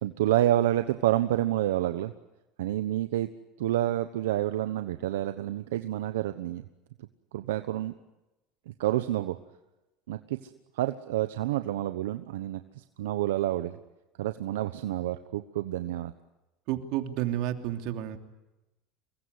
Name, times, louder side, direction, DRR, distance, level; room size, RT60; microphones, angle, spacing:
voice 1, 0.0-2.1 2.6-3.3 3.6-6.6 7.3-7.9 8.8-9.4 10.1-10.4 10.8-13.8 14.2-16.1, right 14 dB, 90° right, 9 dB, 1.1 m, -28 dB
voice 2, 16.7-18.2, right 12 dB, 65° right, 6 dB, 3.0 m, -31 dB
25.5 x 22.0 x 9.7 m, 1.0 s
supercardioid pair, 105°, 0 cm